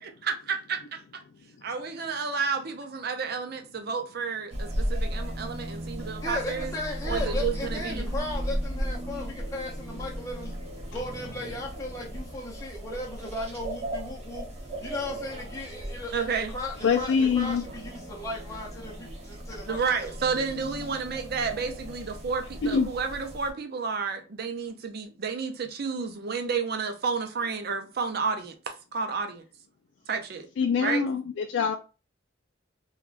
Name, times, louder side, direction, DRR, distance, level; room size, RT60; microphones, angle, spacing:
voice 1, 0.0-1.2 1.6-6.7 7.0-8.1 16.1-16.5 19.7-29.4 30.1-30.5 30.8-31.0, right 5 dB, 50° right, 0.5 m, -31 dB
sound 1, 4.5-23.5, equal, 35° right, 0.9 m, -36 dB
voice 2, 6.2-10.5 10.9-14.5 14.8-19.8, left 1 dB, 15° left, 0.6 m, -36 dB
voice 3, 16.8-17.6 22.6-22.9 30.6-31.7, left 6 dB, 65° left, 0.3 m, -24 dB
3.4 x 2.3 x 2.4 m
head